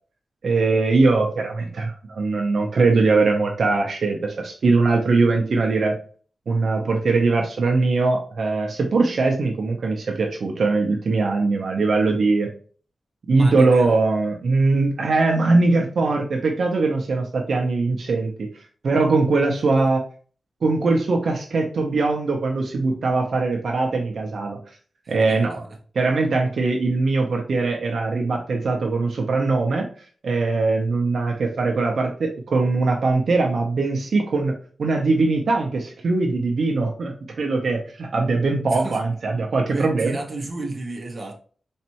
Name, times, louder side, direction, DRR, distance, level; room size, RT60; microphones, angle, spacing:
voice 1, 0.4-6.0 6.5-12.5 13.3-18.5 18.8-20.0 20.6-24.6 25.1-25.6 25.9-29.9 30.2-34.5 34.8-40.1, right 3 dB, 70° right, 2 dB, 0.7 m, -21 dB
voice 2, 13.3-13.9 25.0-25.4 38.7-39.0 39.6-41.4, right 2 dB, 35° right, 0 dB, 1.0 m, -32 dB
4.2 x 3.3 x 2.9 m, 0.42 s
wide cardioid pair, 140°, 0 cm